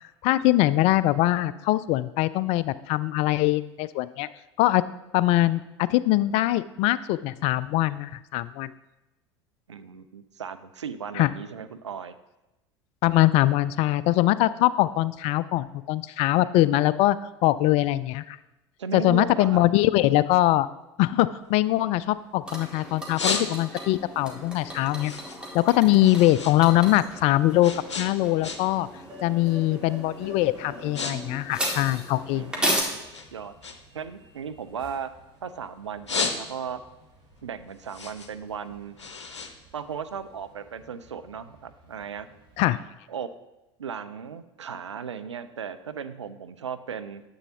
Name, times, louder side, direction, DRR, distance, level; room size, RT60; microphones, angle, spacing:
voice 1, 0.2-4.3 4.6-4.8 5.1-8.7 11.2-11.3 13.0-18.4 18.9-20.7 21.0-25.1 25.5-28.9 29.2-32.5 42.6-42.8, left 16 dB, 45° left, 17 dB, 0.3 m, -22 dB
voice 2, 9.7-12.1 18.8-19.6 25.8-26.3 32.3-32.9 33.3-33.5 33.9-35.1 35.4-36.8 37.4-39.0 39.7-42.3 43.1-43.3 43.8-47.2, right 7 dB, 85° right, 11 dB, 0.4 m, -36 dB
sound 1, 21.4-22.5 22.9-24.0 24.4-26.6 26.9-28.9 29.2-29.5 30.1-30.3 30.6-31.2 31.4-32.7 33.1-35.4 35.8-36.9 37.3-40.4, left 5 dB, 80° left, 0.7 m, -33 dB
sound 2, 22.5-32.8, equal, 5° right, 1.9 m, -35 dB
sound 3, 26.1-42.7, equal, 35° right, 1.8 m, -52 dB
9.7 x 7.9 x 2.9 m, 0.99 s
figure-of-eight pair, 70°, 15 cm